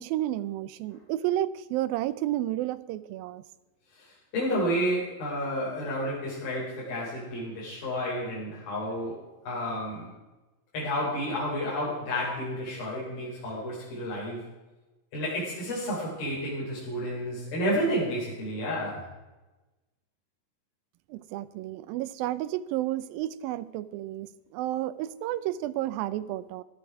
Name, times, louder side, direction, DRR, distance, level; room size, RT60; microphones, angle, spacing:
voice 1, 0.0-3.4 21.1-26.6, right 14 dB, 85° right, 15 dB, 2.5 m, -31 dB
voice 2, 4.0-9.2 9.5-10.1 10.7-14.5 15.1-19.1, equal, 90° left, -6 dB, 5.7 m, -31 dB
16.0 x 13.0 x 4.8 m, 1.1 s
omnidirectional pair, 4.1 m